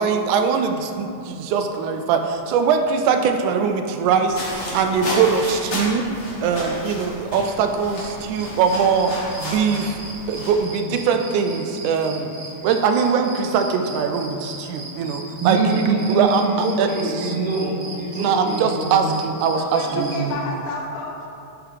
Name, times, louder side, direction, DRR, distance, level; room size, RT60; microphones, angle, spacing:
voice 1, 0.0-6.0 6.4-10.0 10.3-12.3 12.6-15.6 16.1-16.9 17.2-17.3 18.2-20.1, right 6 dB, 90° right, 6 dB, 2.0 m, -21 dB
sound 1, 4.2-10.6, left 1 dB, 60° left, 0.7 m, -32 dB
sound 2, 7.5-20.3, right 2 dB, 50° right, 1.0 m, -39 dB
voice 2, 15.4-19.1 19.9-20.4, right 3 dB, 70° right, -6 dB, 1.4 m, -24 dB
voice 3, 19.6-21.4, left 3 dB, 85° left, -1 dB, 2.1 m, -30 dB
10.0 x 3.5 x 3.5 m, 2.5 s
omnidirectional pair, 3.4 m